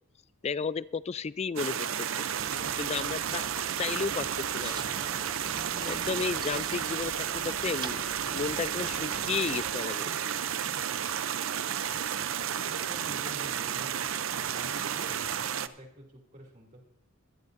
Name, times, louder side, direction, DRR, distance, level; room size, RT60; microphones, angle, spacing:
voice 1, 0.4-2.3 2.8-3.5 3.8-4.8 5.9-8.1 8.3-10.1, left 5 dB, 30° left, 18 dB, 0.3 m, -33 dB
sound 1, 1.6-15.7, right 9 dB, 70° right, 0.6 m, -32 dB
sound 2, 2.4-9.7, right 3 dB, 20° right, 0.6 m, -45 dB
voice 2, 12.6-14.0 14.4-16.8, equal, 40° right, 0 dB, 2.6 m, -48 dB
23.0 x 11.0 x 2.6 m, 0.78 s
head